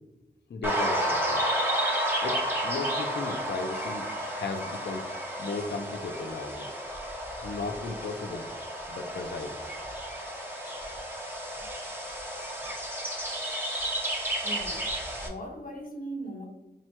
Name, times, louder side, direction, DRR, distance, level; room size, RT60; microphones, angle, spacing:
voice 1, 0.5-1.4 2.2-5.0 5.4-6.8 7.4-8.5 8.9-9.6, left 3 dB, 90° left, 6 dB, 0.5 m, -36 dB
sound 1, 0.6-15.3, right 1 dB, 10° right, 0.8 m, -32 dB
voice 2, 14.4-14.9 15.2-16.5, right 1 dB, 55° left, -1 dB, 1.1 m, -39 dB
5.9 x 2.1 x 2.9 m, 1.0 s
wide cardioid pair, 95°, 17 cm